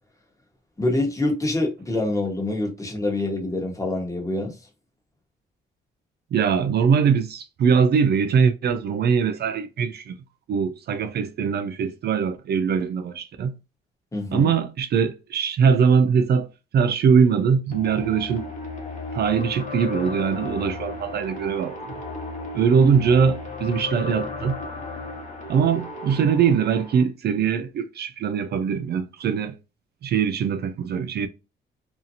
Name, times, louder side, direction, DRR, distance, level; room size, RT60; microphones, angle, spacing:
voice 1, 0.8-4.5 14.1-14.5, left 2 dB, 15° left, 1.2 m, -25 dB
voice 2, 6.3-10.2 10.5-13.6 14.3-16.5 16.7-18.4 19.1-21.8 22.5-24.6 25.5-29.6 30.0-31.3, right 6 dB, 55° right, 0.4 m, -21 dB
sound 1, 17.7-27.0, left 3 dB, 40° left, 1.1 m, -34 dB
2.7 x 2.4 x 2.6 m
cardioid pair, 90°, 20 cm